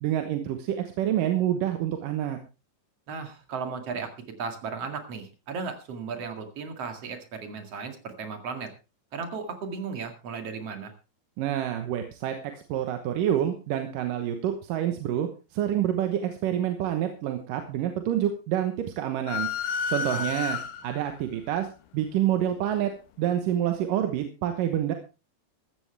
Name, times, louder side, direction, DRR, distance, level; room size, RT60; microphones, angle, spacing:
voice 1, 0.0-2.4 11.4-19.5 19.9-21.7 21.9-22.9 23.2-24.9, right 11 dB, 70° right, 6 dB, 2.6 m, -27 dB
voice 2, 3.1-4.1 4.4-8.7 9.1-10.9 20.1-20.3, right 5 dB, 45° right, 6 dB, 2.7 m, -35 dB
sound 1, 19.3-21.1, left 6 dB, 75° left, 2.6 m, -30 dB
15.0 x 14.0 x 3.4 m, 0.30 s
omnidirectional pair, 4.3 m